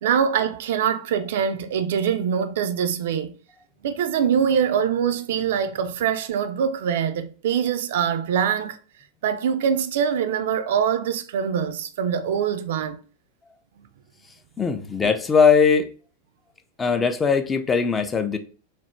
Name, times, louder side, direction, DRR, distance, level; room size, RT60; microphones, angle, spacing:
voice 1, 0.0-3.3 3.8-8.8 9.2-13.0, right 8 dB, 55° right, 0.3 m, -23 dB
voice 2, 14.6-15.9 16.8-18.4, left 5 dB, 15° left, 0.4 m, -20 dB
3.3 x 2.0 x 3.0 m
figure-of-eight pair, 90°, 0 cm